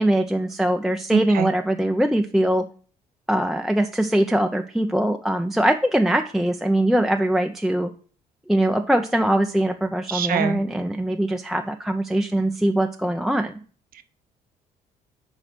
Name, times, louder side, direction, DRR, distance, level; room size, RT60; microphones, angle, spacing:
voice 1, 0.0-2.6 3.3-7.9 8.5-13.5, right 1 dB, ahead, 5 dB, 0.5 m, -22 dB
voice 2, 1.1-1.5 10.1-10.6 14.0-14.1, right 9 dB, 45° right, 13 dB, 0.7 m, -25 dB
4.8 x 4.5 x 6.0 m, 0.41 s
figure-of-eight pair, 50°, 21 cm